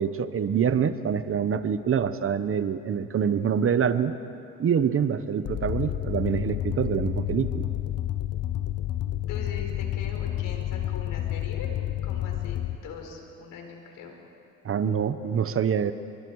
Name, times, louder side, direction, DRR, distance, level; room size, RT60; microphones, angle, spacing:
voice 1, 0.0-4.1 4.6-7.7 14.6-15.9, right 7 dB, 45° right, 12 dB, 1.0 m, -25 dB
sound 1, 5.4-12.8, left 12 dB, 50° left, 1.1 m, -30 dB
voice 2, 9.3-11.7 12.0-14.2, left 5 dB, 85° left, 2 dB, 4.5 m, -41 dB
29.5 x 23.0 x 4.8 m, 2.7 s
cardioid pair, 100°, 31 cm